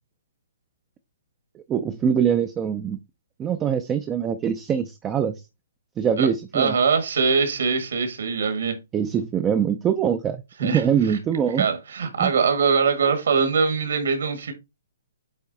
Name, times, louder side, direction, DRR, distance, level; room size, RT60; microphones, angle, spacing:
voice 1, 1.6-3.0 3.4-5.4 6.0-6.8 8.9-11.7 12.2-12.3, right 8 dB, 10° right, 0.3 m, -23 dB
voice 2, 6.5-8.8 10.6-10.8 11.1-11.2 11.6-14.5, right 5 dB, 65° right, 1.7 m, -22 dB
8.3 x 3.2 x 4.0 m
hypercardioid pair, 180°, 0 cm